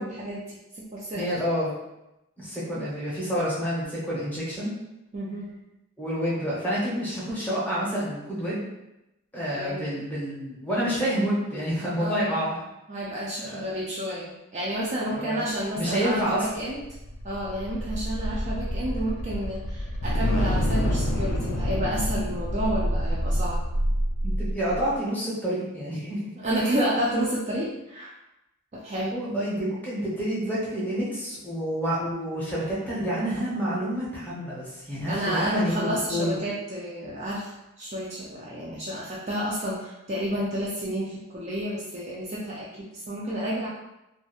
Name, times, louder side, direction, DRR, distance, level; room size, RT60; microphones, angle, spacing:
voice 1, 0.0-1.3 5.1-5.5 9.5-10.0 12.0-12.4 12.9-16.8 17.2-23.6 26.4-28.1 28.7-29.2 35.1-43.7, equal, 30° right, -6 dB, 0.3 m, -30 dB
voice 2, 1.1-1.7 2.4-4.7 6.0-8.7 9.3-12.6 13.4-13.7 15.1-16.5 24.2-26.2 29.1-35.7 36.1-36.4, equal, 10° left, -7 dB, 0.6 m, -28 dB
sound 1, 16.5-24.9, equal, 60° left, 0.3 m, -27 dB
2.3 x 2.0 x 2.9 m, 0.91 s
head